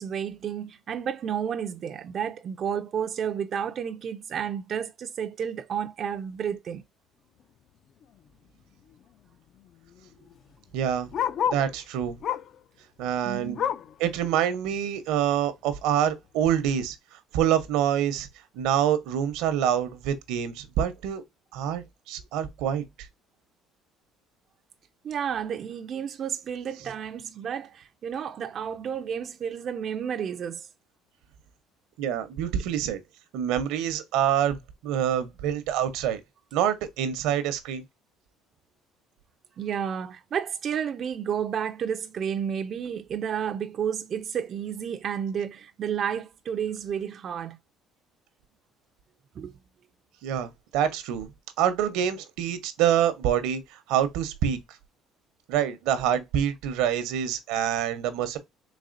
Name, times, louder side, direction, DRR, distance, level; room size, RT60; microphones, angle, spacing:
voice 1, 0.0-6.8 13.2-13.6 25.0-30.7 39.6-47.6 49.4-49.5, right 8 dB, 45° right, 0.3 m, -31 dB
Bark, 8.0-8.3 8.6-8.7 8.9-11.7 12.2-12.6 13.0-14.0 14.5-14.6 14.9-15.0 15.7-15.8, left 9 dB, 50° left, 0.3 m, -31 dB
voice 2, 10.7-11.1 11.5-12.2 13.0-13.7 14.0-17.0 17.3-18.3 18.5-21.2 21.5-22.8 32.0-33.0 33.3-36.2 36.5-37.8 50.2-51.3 51.6-54.6 55.5-58.4, right 9 dB, 85° right, 0.7 m, -26 dB
4.1 x 3.1 x 2.5 m
cardioid pair, 120°, 0 cm